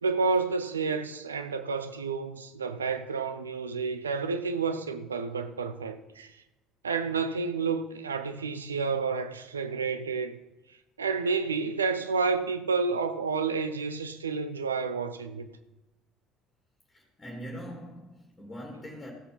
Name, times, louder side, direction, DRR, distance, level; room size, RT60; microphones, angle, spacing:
voice 1, 0.0-6.4 6.8-10.4 11.0-15.5, right 4 dB, 85° right, 0.7 m, -30 dB
voice 2, 16.9-19.1, equal, 20° left, 2.8 m, -42 dB
14.5 x 6.8 x 5.5 m
figure-of-eight pair, 60°, 0 cm